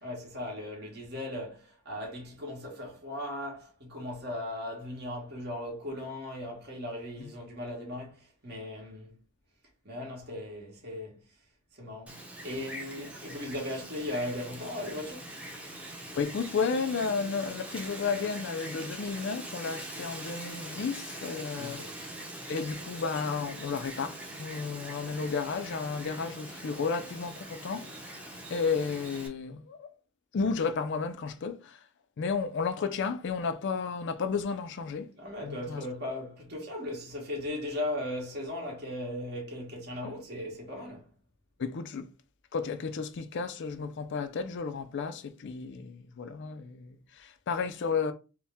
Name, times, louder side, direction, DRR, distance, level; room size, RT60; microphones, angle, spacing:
voice 1, 0.0-9.2 9.8-11.2 11.8-15.3 21.6-22.0 35.1-41.1, left 1 dB, 50° right, 1.6 m, -38 dB
Wind, 12.1-29.3, right 1 dB, 5° right, 0.7 m, -43 dB
voice 2, 16.1-21.9 22.5-29.9 30.3-31.8 32.2-35.1 35.4-35.8 40.0-40.1 41.6-42.1 42.5-48.1, left 5 dB, 55° left, 0.4 m, -33 dB
4.3 x 2.2 x 3.5 m
head